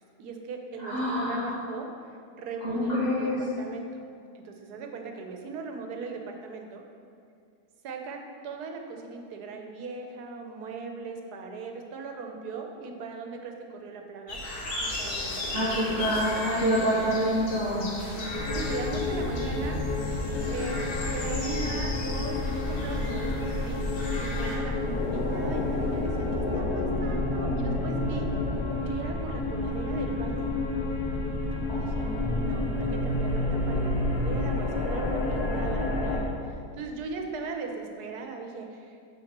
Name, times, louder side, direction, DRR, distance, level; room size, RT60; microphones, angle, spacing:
voice 1, 0.2-2.1 2.4-4.0 4.3-6.8 7.8-14.4 14.8-16.2 17.0-17.3 18.0-20.0 20.5-20.8 21.1-23.9 24.2-24.8 25.1-28.3 28.9-30.5 31.7-32.1 32.4-39.0, right 4 dB, 80° right, 3 dB, 1.3 m, -39 dB
voice 2, 0.8-1.5 2.6-3.4 15.5-17.9, equal, 55° left, -11 dB, 2.0 m, -26 dB
sound 1, 14.3-24.6, left 1 dB, 70° left, 1.6 m, -36 dB
sound 2, 18.3-36.2, left 2 dB, 85° left, 1.6 m, -29 dB
5.9 x 4.8 x 6.6 m, 2.3 s
omnidirectional pair, 1.6 m